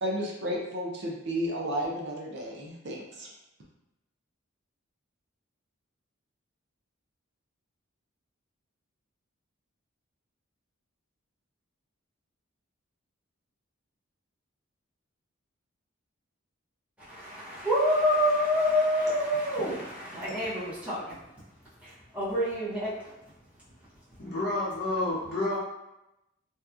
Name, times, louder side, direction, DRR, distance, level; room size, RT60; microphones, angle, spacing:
voice 1, 0.0-3.3, equal, 55° right, -2 dB, 0.5 m, -32 dB
voice 2, 17.0-21.2 21.8-23.1 24.1-24.2, equal, 5° right, -11 dB, 0.8 m, -27 dB
voice 3, 24.2-25.6, left 2 dB, 50° left, -7 dB, 0.8 m, -29 dB
2.7 x 2.3 x 2.3 m, 0.90 s
head